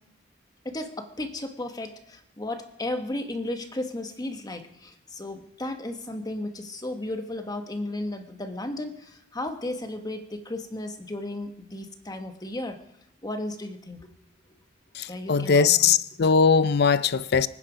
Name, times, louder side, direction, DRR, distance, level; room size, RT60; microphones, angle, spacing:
voice 1, 0.6-12.8 13.2-14.1 15.1-15.9, left 1 dB, 20° left, 1.3 m, -34 dB
voice 2, 14.9-17.5, left 6 dB, 55° left, 0.5 m, -20 dB
24.5 x 9.8 x 5.1 m
head